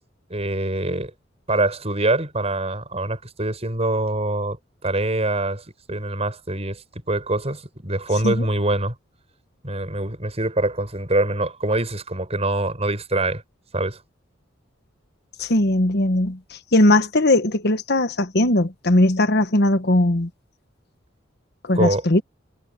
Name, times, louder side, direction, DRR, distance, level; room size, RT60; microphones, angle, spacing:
voice 1, 0.3-1.1 1.5-4.6 4.8-8.9 9.6-13.4 13.7-14.0 21.7-22.0, right 2 dB, 35° right, 6.8 m, -24 dB
voice 2, 15.4-20.3 21.6-22.2, left 1 dB, 60° left, 1.4 m, -19 dB
head